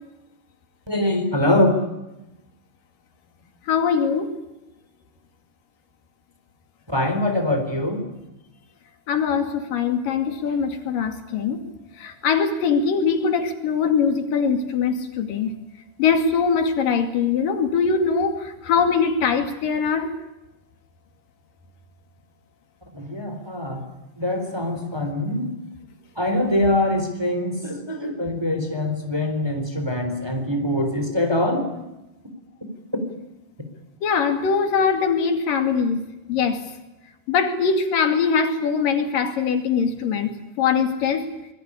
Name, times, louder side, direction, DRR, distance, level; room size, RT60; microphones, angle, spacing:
voice 1, 0.9-1.7 6.9-8.0 22.9-23.8 24.2-25.5 26.2-31.7, left 1 dB, 5° right, 5 dB, 3.6 m, -23 dB
voice 2, 3.7-4.3 9.1-11.6 12.0-15.5 16.0-20.1 34.0-36.0 36.3-36.6 37.3-41.2, left 6 dB, 80° left, 7 dB, 4.1 m, -22 dB
25.0 x 21.0 x 10.0 m, 0.96 s
omnidirectional pair, 3.8 m